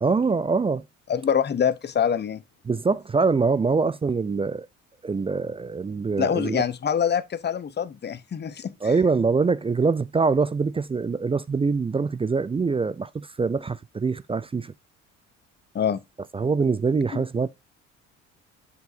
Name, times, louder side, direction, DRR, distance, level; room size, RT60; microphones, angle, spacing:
voice 1, 0.0-0.8 2.7-4.7 5.0-6.6 8.8-14.7 16.3-17.5, right 4 dB, 15° right, 0.4 m, -24 dB
voice 2, 1.1-2.4 6.2-8.9 15.7-16.0 17.1-17.2, left 8 dB, 30° left, 0.8 m, -25 dB
8.0 x 6.9 x 2.6 m
hypercardioid pair, 50°, 37 cm